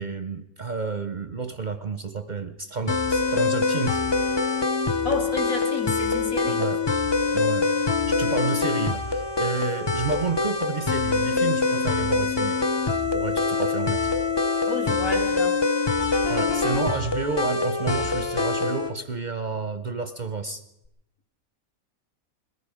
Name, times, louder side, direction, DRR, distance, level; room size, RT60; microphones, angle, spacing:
voice 1, 0.0-4.0 6.5-6.8 7.3-7.7 8.1-12.6 13.1-14.1 16.3-20.6, right 4 dB, 45° right, 9 dB, 0.6 m, -30 dB
sound 1, 2.9-18.9, left 4 dB, 30° left, 0.5 m, -24 dB
voice 2, 5.0-6.6 14.7-15.5, left 2 dB, 75° left, -1 dB, 3.1 m, -30 dB
21.0 x 14.0 x 4.9 m, 0.85 s
omnidirectional pair, 1.5 m